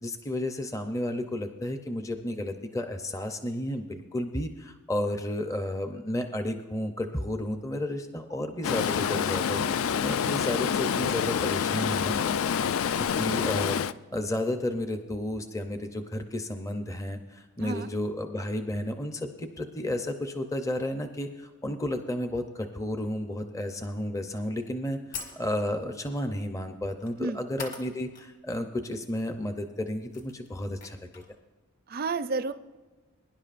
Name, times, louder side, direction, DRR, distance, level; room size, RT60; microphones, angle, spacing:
voice 1, 0.0-12.1 13.0-13.8 14.1-31.2, left 1 dB, 15° left, 7 dB, 0.6 m, -32 dB
Stream, 8.6-13.9, left 7 dB, 70° left, 0.3 m, -27 dB
voice 2, 17.6-17.9 27.2-27.4 31.9-32.5, right 3 dB, 40° right, 11 dB, 0.4 m, -31 dB
sound 1, 24.4-24.5 25.1-25.8 27.0-27.2 27.6-28.3 28.6-28.7 29.6-29.7 29.9-31.4, left 5 dB, 35° left, 1.4 m, -42 dB
22.0 x 10.5 x 2.5 m, 1.3 s
head